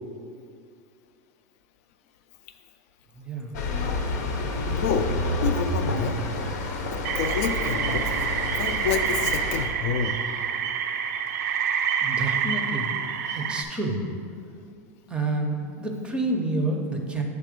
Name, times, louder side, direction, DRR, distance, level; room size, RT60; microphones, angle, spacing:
voice 1, 3.2-3.5 12.0-12.9 13.3-14.0 15.1-17.2, right 2 dB, 10° right, 2 dB, 0.6 m, -28 dB
sound 1, 3.5-9.7, left 2 dB, 85° left, 0.8 m, -28 dB
voice 2, 4.7-5.1 5.4-6.2 6.9-8.1 8.6-10.2, left 7 dB, 60° left, 8 dB, 0.4 m, -28 dB
sound 2, 7.0-13.6, right 7 dB, 90° right, 0.4 m, -27 dB
7.5 x 3.3 x 5.0 m, 2.3 s
supercardioid pair, 150°, 9 cm